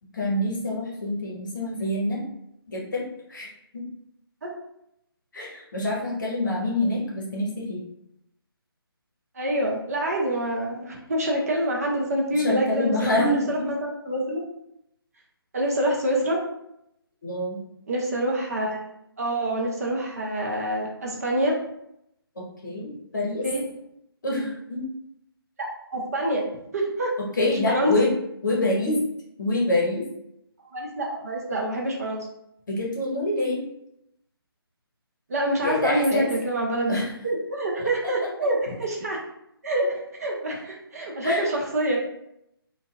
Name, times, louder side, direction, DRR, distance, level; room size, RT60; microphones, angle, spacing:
voice 1, 0.1-2.2 2.7-3.0 3.3-3.5 3.7-3.8 5.3-7.8 12.3-13.7 17.2-17.6 22.4-23.4 24.2-24.9 27.2-28.1 28.4-29.0 29.4-30.0 32.7-33.6 35.6-36.3 36.9-37.1 37.8-37.9 41.2-41.5, left 1 dB, 50° left, -3 dB, 0.9 m, -26 dB
voice 2, 9.4-14.4 15.5-16.4 17.9-21.6 23.4-23.6 25.6-26.5 26.7-27.1 27.7-27.9 30.7-32.3 35.3-39.2 39.6-42.0, right 1 dB, 40° right, -2 dB, 0.5 m, -26 dB
2.6 x 2.3 x 2.3 m, 0.78 s
figure-of-eight pair, 145°, 13 cm